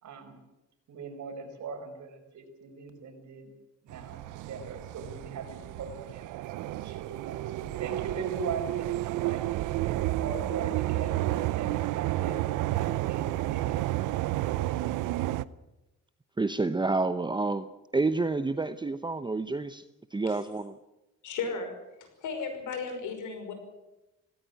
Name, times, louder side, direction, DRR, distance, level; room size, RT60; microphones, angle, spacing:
voice 1, 0.0-0.4 0.9-3.5 3.8-6.3 6.6-11.2 11.5-12.4 12.7-13.8, right 4 dB, 70° right, 5 dB, 5.4 m, -41 dB
sound 1, 3.9-15.4, right 16 dB, 90° right, 0.7 m, -31 dB
voice 2, 16.4-17.7 17.9-19.8 20.1-20.8, right 3 dB, 15° right, 11 dB, 0.8 m, -29 dB
voice 3, 21.2-21.7 22.2-23.5, left 5 dB, 80° left, 6 dB, 5.6 m, -34 dB
18.0 x 17.0 x 9.5 m, 0.98 s
cardioid pair, 90°, 30 cm